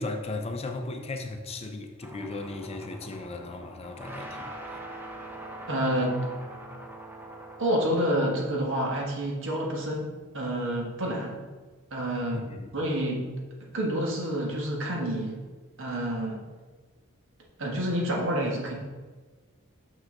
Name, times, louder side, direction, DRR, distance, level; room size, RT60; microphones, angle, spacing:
voice 1, 0.0-4.8 12.3-12.7, left 2 dB, 30° left, 0.5 m, -36 dB
sound 1, 2.0-8.0, right 1 dB, 10° right, 0.7 m, -42 dB
voice 2, 5.7-6.3 7.6-10.1 10.3-11.4 11.9-13.3 13.6-15.4 15.8-16.4 17.6-18.7, right 1 dB, 60° right, 1.6 m, -28 dB
6.3 x 6.2 x 3.8 m
head